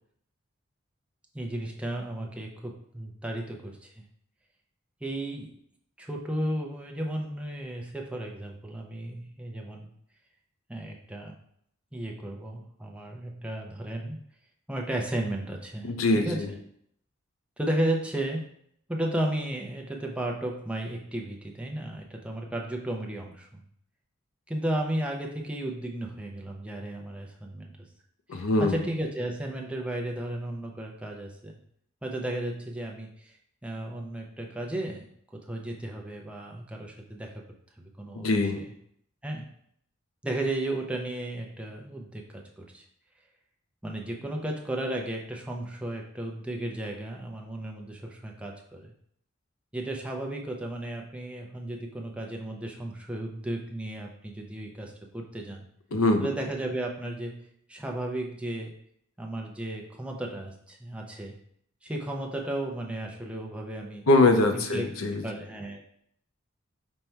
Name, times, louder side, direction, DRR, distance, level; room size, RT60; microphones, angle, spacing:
voice 1, 1.3-4.0 5.0-5.5 6.0-9.9 10.7-11.3 11.9-14.2 14.7-16.4 17.6-18.5 18.9-23.6 24.5-27.7 28.3-31.6 32.0-33.4 33.6-35.1 35.3-37.4 37.8-38.6 39.2-39.4 40.2-42.8 43.8-48.9 49.7-55.7 56.2-57.4 57.7-58.8 59.2-61.3 61.8-64.1 64.5-64.9 65.2-65.8, right 1 dB, 5° right, 0 dB, 0.5 m, -34 dB
voice 2, 15.8-16.5 28.3-28.7 38.1-38.6 55.9-56.3 64.1-65.2, left 2 dB, 90° left, 5 dB, 0.6 m, -23 dB
5.3 x 2.2 x 4.4 m, 0.68 s
head